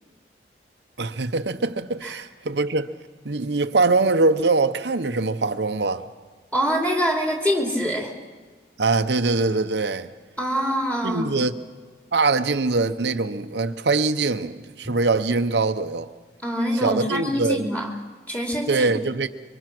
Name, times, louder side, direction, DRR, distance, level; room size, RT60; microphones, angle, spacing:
voice 1, 1.0-2.9 3.2-6.0 8.8-10.1 11.0-11.5 12.1-16.1 16.7-17.7 18.7-19.3, right 3 dB, 75° right, 0.8 m, -23 dB
voice 2, 6.5-8.1 10.4-11.3 16.4-17.9 18.3-18.9, equal, 10° left, 3.1 m, -24 dB
24.5 x 24.0 x 6.1 m
head